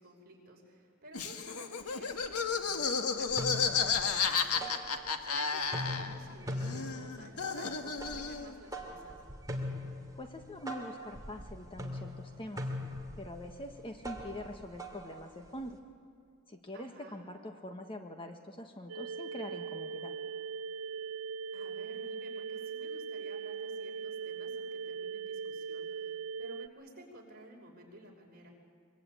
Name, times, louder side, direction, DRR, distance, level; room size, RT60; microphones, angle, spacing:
voice 1, 0.0-9.2 16.7-17.2 21.5-28.5, right 1 dB, 45° right, 0 dB, 5.5 m, -53 dB
Laughter, 1.1-6.3 6.6-8.5, left 5 dB, 85° left, 1.7 m, -32 dB
sound 1, 1.8-1.9 2.2-2.9 3.2-5.4 5.6-15.8, left 1 dB, 15° right, 2.5 m, -42 dB
voice 2, 10.2-12.7 13.2-15.8 16.5-20.1, left 1 dB, 25° left, 4 dB, 1.4 m, -44 dB
sound 2, 18.9-26.7, right 6 dB, 75° right, 0.6 m, -40 dB
23.5 x 23.5 x 9.2 m, 2.2 s
head